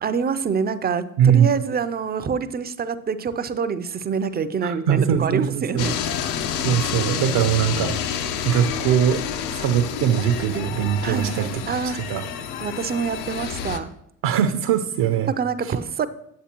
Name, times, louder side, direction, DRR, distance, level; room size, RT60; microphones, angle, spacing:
voice 1, 0.0-6.0 11.0-12.0 12.6-13.9 15.3-16.1, right 6 dB, 20° right, 13 dB, 0.5 m, -26 dB
voice 2, 1.2-1.5 4.6-5.9 6.6-9.2 9.5-11.6 11.9-12.3 14.2-15.3 15.6-15.7, right 9 dB, 60° right, 7 dB, 0.7 m, -21 dB
sound 1, 5.8-13.8, left 8 dB, 75° left, 0.8 m, -29 dB
8.5 x 8.0 x 2.9 m, 0.77 s
hypercardioid pair, 65°, 45 cm